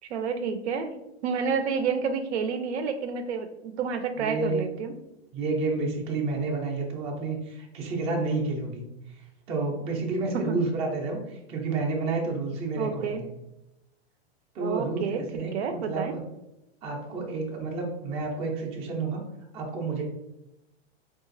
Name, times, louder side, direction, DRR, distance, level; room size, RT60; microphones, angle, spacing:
voice 1, 0.0-0.9 1.2-4.9 10.3-10.6 12.8-13.2 14.6-15.2 15.5-16.1, right 6 dB, 80° right, 8 dB, 0.5 m, -29 dB
voice 2, 4.2-4.7 5.3-8.9 9.1-13.3 14.5-16.2 16.8-19.2 19.5-20.0, right 3 dB, 20° right, 0 dB, 0.4 m, -30 dB
3.8 x 2.4 x 2.5 m, 0.91 s
hypercardioid pair, 140°, 33 cm